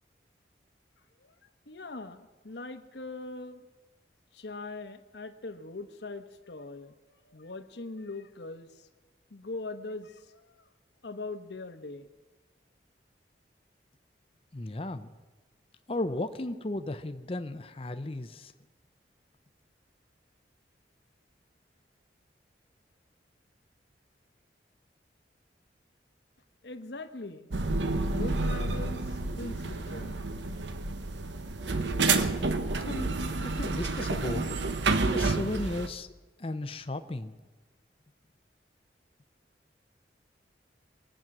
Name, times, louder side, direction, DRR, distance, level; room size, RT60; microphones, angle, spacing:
voice 1, 1.7-3.6 4.3-7.0 7.2-8.9 9.3-10.6 11.0-12.1 26.6-27.5 28.0-30.2, left 3 dB, 75° left, 8 dB, 1.0 m, -41 dB
voice 2, 14.5-15.1 15.9-18.5 32.9-34.5 35.1-36.1 36.4-37.3, left 2 dB, 30° left, 9 dB, 0.6 m, -35 dB
sound 1, 27.5-35.9, right 3 dB, 85° right, 1.0 m, -29 dB
22.5 x 9.0 x 6.0 m, 1.2 s
head